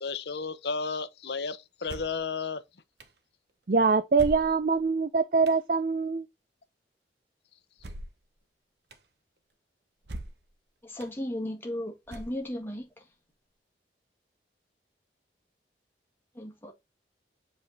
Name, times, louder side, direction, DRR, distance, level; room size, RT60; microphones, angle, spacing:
voice 1, 0.0-2.6, left 4 dB, 70° left, 0.8 m, -33 dB
sound 1, 1.9-2.2 3.0-3.1 4.1-4.8 5.5-5.6 7.8-8.3 8.9-9.0 10.0-10.5 11.0-11.1 12.1-12.6, right 1 dB, 70° right, 1.1 m, -40 dB
voice 2, 3.7-6.3, right 4 dB, 50° right, 0.5 m, -24 dB
voice 3, 10.9-12.9 16.4-16.7, left 1 dB, 10° left, 1.7 m, -35 dB
7.4 x 3.6 x 4.0 m
head